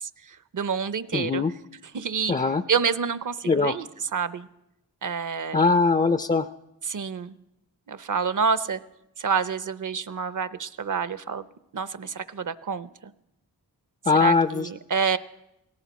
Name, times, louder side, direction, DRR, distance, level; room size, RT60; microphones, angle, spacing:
voice 1, 0.0-1.4 1.9-2.3 2.7-4.5 5.0-5.6 6.9-7.3 7.9-8.8 9.2-11.5 11.7-13.1 14.2-15.2, right 6 dB, 50° right, 15 dB, 0.7 m, -28 dB
voice 2, 1.1-1.5 2.3-2.6 3.5-3.7 5.5-6.5 14.1-14.7, left 4 dB, 20° left, 10 dB, 0.4 m, -21 dB
17.5 x 15.5 x 4.1 m, 0.86 s
cardioid pair, 45°, 40 cm